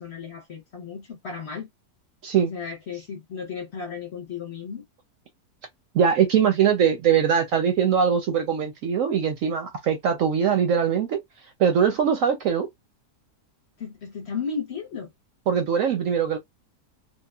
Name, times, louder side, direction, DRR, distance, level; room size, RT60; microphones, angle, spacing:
voice 1, 0.0-1.7 2.4-4.8 13.8-15.1, left 6 dB, 55° left, 0.8 m, -34 dB
voice 2, 5.9-11.2 11.6-12.7 15.5-16.4, right 7 dB, 70° right, 0.8 m, -21 dB
3.5 x 2.2 x 2.3 m
omnidirectional pair, 1.8 m